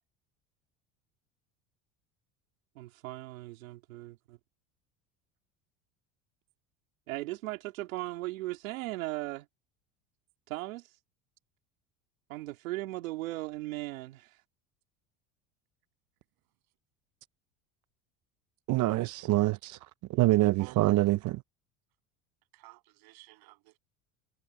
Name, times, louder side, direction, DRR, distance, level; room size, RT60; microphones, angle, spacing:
voice 1, 2.7-4.4 7.1-9.5 10.5-11.0 12.3-14.4, right 19 dB, 85° right, 2.8 m, -38 dB
voice 2, 18.7-21.4, right 18 dB, 50° right, 0.6 m, -26 dB
voice 3, 20.6-21.2 22.5-23.8, right 23 dB, 65° right, 7.8 m, -53 dB
hypercardioid pair, 85°, 39 cm